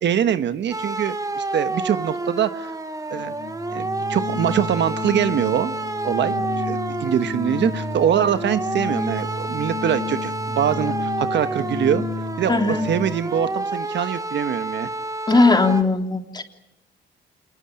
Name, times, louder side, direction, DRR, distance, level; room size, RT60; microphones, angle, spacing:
voice 1, 0.0-2.7 3.1-3.3 3.7-5.7 6.0-12.0 12.4-14.9, right 9 dB, 65° right, 11 dB, 1.2 m, -23 dB
sound 1, 0.7-15.8, right 2 dB, 15° right, 1.6 m, -29 dB
Organ, 3.1-13.4, left 4 dB, 55° left, 4.0 m, -32 dB
voice 2, 12.5-12.8 15.3-16.4, left 3 dB, 20° left, 4 dB, 3.3 m, -18 dB
27.5 x 20.5 x 8.9 m, 0.94 s
cardioid pair, 90°, 20 cm